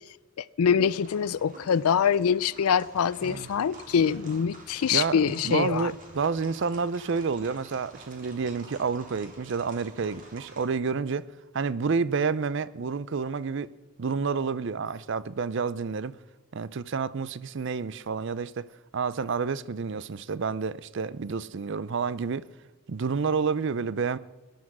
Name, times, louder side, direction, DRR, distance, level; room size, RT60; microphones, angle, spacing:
voice 1, 0.4-5.9, left 7 dB, 85° left, 0.4 m, -24 dB
sound 1, 0.8-10.6, right 2 dB, 40° right, 3.8 m, -49 dB
voice 2, 4.9-11.2 11.5-13.7 14.0-16.1 16.5-22.5 22.9-24.2, right 5 dB, 55° right, 0.5 m, -29 dB
19.0 x 11.5 x 6.1 m
head